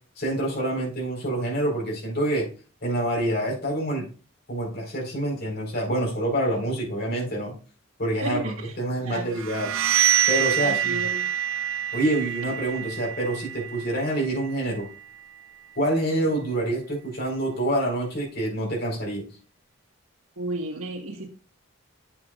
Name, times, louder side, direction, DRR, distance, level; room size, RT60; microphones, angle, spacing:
voice 1, 0.2-2.5 2.8-4.0 4.5-7.5 8.0-9.7 10.3-11.0 11.9-14.9 15.7-19.3, right 1 dB, 50° left, -1 dB, 4.6 m, -27 dB
voice 2, 8.2-8.7 9.0-9.4 10.6-11.3 20.4-21.3, right 2 dB, 90° right, -5 dB, 1.6 m, -32 dB
sound 1, 9.4-15.0, right 10 dB, 75° right, 0.5 m, -26 dB
8.6 x 8.1 x 2.5 m, 0.36 s
head